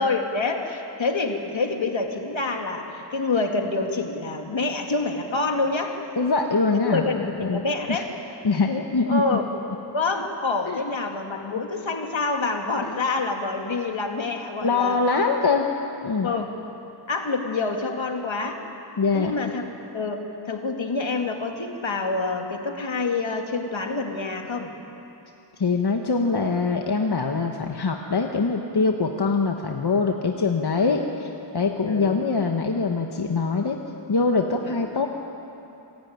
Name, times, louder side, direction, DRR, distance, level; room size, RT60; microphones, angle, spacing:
voice 1, 0.0-6.0 6.7-8.1 9.1-9.5 9.9-15.0 16.2-16.5 17.1-18.6 19.1-19.7 19.9-24.7 31.8-32.2 34.6-34.8, left 3 dB, 75° left, 3 dB, 2.3 m, -27 dB
voice 2, 6.2-7.0 7.4-7.6 7.9-8.0 8.4-9.4 10.7-10.8 11.5-11.6 12.9-13.0 14.6-15.7 16.0-16.3 19.0-19.3 25.6-31.3 31.5-33.8 34.1-35.1, left 4 dB, 55° left, 3 dB, 1.3 m, -23 dB
26.5 x 16.5 x 9.5 m, 3.0 s
wide cardioid pair, 75°, 47 cm